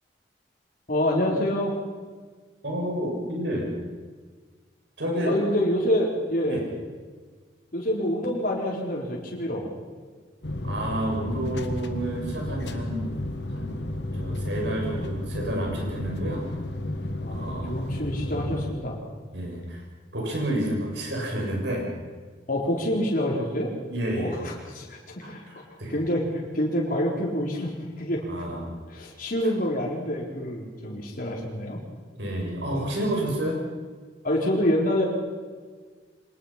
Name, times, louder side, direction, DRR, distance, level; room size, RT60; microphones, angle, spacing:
voice 1, 0.9-1.7 5.2-6.6 7.7-9.7 17.2-19.0 22.5-23.7 24.2-25.4 25.9-27.7 28.0-28.2 28.9-31.8 34.2-35.1, left 1 dB, 50° left, -3 dB, 4.2 m, -27 dB
voice 2, 2.6-3.7 5.0-5.4 6.4-6.6 10.6-13.2 13.5-13.8 14.1-16.5 17.3-17.7 19.3-19.8 20.1-21.9 23.9-24.4 25.2-25.9 28.3-28.6 32.2-33.6, right 1 dB, 80° right, 0 dB, 7.0 m, -30 dB
sound 1, 10.4-18.7, left 1 dB, 70° left, 1.6 m, -32 dB
25.0 x 19.5 x 5.9 m, 1.5 s
head